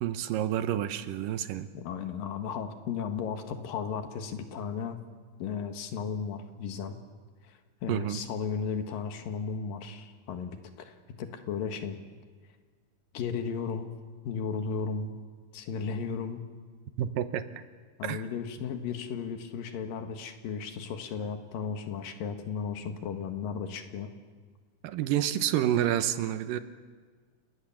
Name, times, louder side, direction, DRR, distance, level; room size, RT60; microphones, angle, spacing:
voice 1, 0.0-1.7 7.9-8.2 17.0-17.4 18.0-18.2 24.8-26.6, right 11 dB, 85° right, 11 dB, 2.7 m, -29 dB
voice 2, 1.7-5.0 5.4-7.0 7.5-7.6 7.8-12.0 13.1-13.9 14.2-15.1 15.5-16.4 18.0-24.1, left 6 dB, 90° left, 6 dB, 3.3 m, -35 dB
29.5 x 19.0 x 7.3 m, 1.5 s
omnidirectional pair, 3.9 m